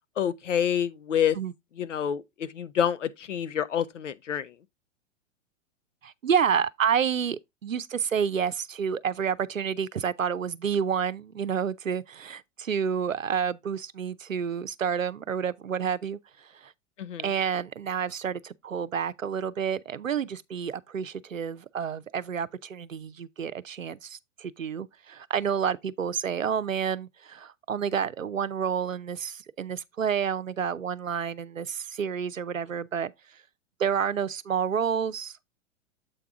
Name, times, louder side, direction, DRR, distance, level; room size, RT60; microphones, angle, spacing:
voice 1, 0.2-1.4 1.8-4.5 17.0-17.3, left 9 dB, 70° left, 0.8 m, -27 dB
voice 2, 6.0-16.7 17.2-33.1 33.8-35.4, right 7 dB, 85° right, 0.6 m, -29 dB
7.8 x 4.6 x 3.6 m
figure-of-eight pair, 105°, 38 cm